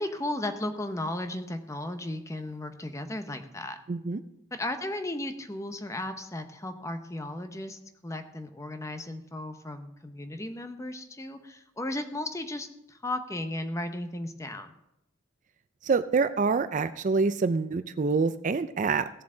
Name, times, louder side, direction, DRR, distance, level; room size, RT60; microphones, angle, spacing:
voice 1, 0.0-3.8 4.5-14.7, left 1 dB, 15° left, 8 dB, 0.9 m, -35 dB
voice 2, 3.9-4.2 15.8-19.1, right 4 dB, 40° right, 13 dB, 0.4 m, -26 dB
16.5 x 7.1 x 3.9 m, 0.85 s
head